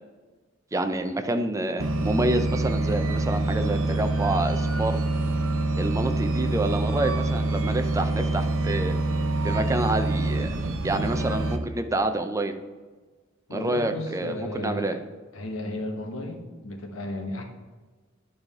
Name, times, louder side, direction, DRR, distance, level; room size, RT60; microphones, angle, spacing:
voice 1, 0.7-5.0 5.8-9.0 9.4-12.5 13.5-15.0, right 2 dB, 15° right, 7 dB, 0.5 m, -28 dB
sound 1, 1.8-11.6, right 2 dB, 80° right, 0.7 m, -26 dB
voice 2, 13.5-15.0 15.3-17.4, left 1 dB, 85° left, 3 dB, 1.2 m, -34 dB
10.5 x 4.8 x 3.6 m, 1.3 s
head